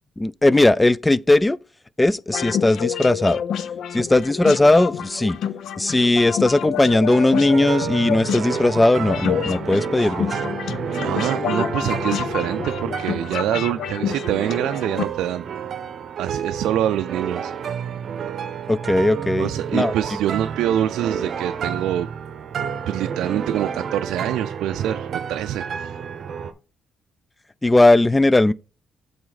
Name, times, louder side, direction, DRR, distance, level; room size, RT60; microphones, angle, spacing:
voice 1, 0.2-1.6 2.0-3.4 3.9-5.4 5.8-10.3 11.6-11.7 18.7-19.9 27.6-28.5, left 2 dB, 15° left, 0.4 m, -18 dB
sound 1, 2.3-15.0, left 8 dB, 70° left, 0.6 m, -29 dB
sound 2, 7.1-26.5, right 7 dB, 60° right, 0.8 m, -30 dB
voice 2, 11.0-15.4 16.2-17.5 19.4-22.1 22.9-26.0, right 11 dB, 85° right, 0.4 m, -25 dB
7.7 x 4.1 x 4.0 m
cardioid pair, 90°, 0 cm